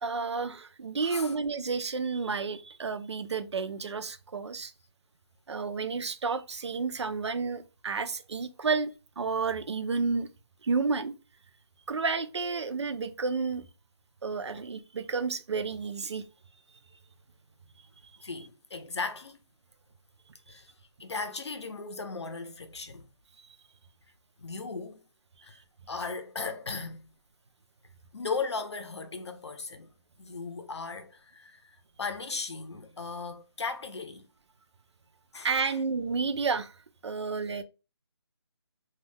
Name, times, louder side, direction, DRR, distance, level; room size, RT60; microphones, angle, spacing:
voice 1, 0.0-4.7 5.5-8.9 9.2-10.3 10.6-11.1 11.9-13.6 14.2-16.2 35.4-36.7 37.0-37.6, right 4 dB, 75° right, 0.4 m, -31 dB
voice 2, 1.0-1.4 14.5-14.6 18.2-19.4 20.5-20.7 21.0-23.1 24.4-25.0 25.4-27.1 28.1-29.9 30.2-34.3 35.3-35.8, left 4 dB, 70° left, 0.6 m, -37 dB
2.3 x 2.2 x 3.3 m
hypercardioid pair, 180°, 15 cm